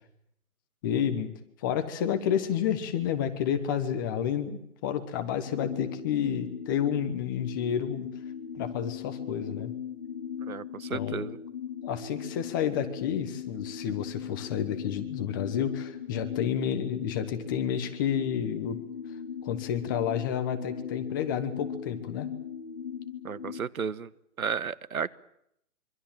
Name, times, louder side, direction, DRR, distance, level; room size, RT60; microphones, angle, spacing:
voice 1, 0.8-1.3 1.6-8.1 8.5-9.7 10.9-11.2 11.8-18.8 19.4-22.3, left 9 dB, 15° left, 8 dB, 1.1 m, -30 dB
sound 1, 5.4-23.6, left 7 dB, 30° left, 2.1 m, -39 dB
voice 2, 10.4-11.4 23.2-24.1 24.4-25.1, right 6 dB, 70° right, 17 dB, 1.3 m, -33 dB
26.0 x 24.5 x 7.6 m, 0.76 s
hypercardioid pair, 160°, 45 cm